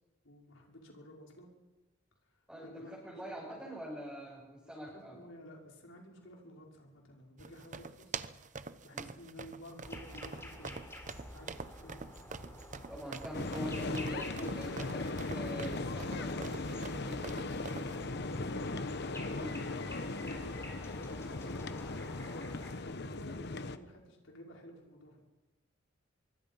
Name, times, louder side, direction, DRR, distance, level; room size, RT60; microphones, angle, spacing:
voice 1, 0.2-1.5 2.3-3.8 4.6-10.8 11.3-12.0 17.2-18.8 19.6-21.8 22.7-25.2, left 1 dB, 90° left, 0 dB, 5.8 m, -53 dB
voice 2, 2.5-5.2 8.9-9.1 12.9-17.3 19.3-19.6, equal, 5° right, -7 dB, 7.5 m, -44 dB
sound 1, 7.4-18.0, right 4 dB, 40° right, 0.9 m, -46 dB
sound 2, 9.8-22.7, left 1 dB, 15° left, 3.8 m, -49 dB
sound 3, 13.3-23.8, left 2 dB, 60° left, 1.1 m, -38 dB
25.0 x 23.5 x 5.7 m, 1.1 s
head